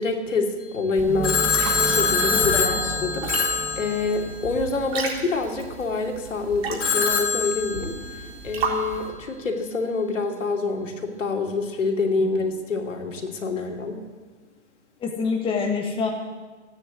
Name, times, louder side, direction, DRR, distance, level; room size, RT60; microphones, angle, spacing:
voice 1, 0.0-2.5 2.8-7.9 8.4-14.0, left 3 dB, 90° left, 2 dB, 2.8 m, -26 dB
sound 1, 0.9-9.1, right 4 dB, 55° right, 3.8 m, -34 dB
sound 2, 1.0-4.8, right 2 dB, 20° right, 1.8 m, -32 dB
Telephone, 1.2-4.5 6.8-8.3, left 5 dB, 70° left, 2.7 m, -24 dB
voice 2, 2.3-2.8 8.7-8.8 12.2-12.3 13.6-13.7 15.0-16.1, left 5 dB, 15° left, 1 dB, 1.6 m, -27 dB
15.5 x 9.8 x 8.1 m, 1.4 s
hypercardioid pair, 140°, 37 cm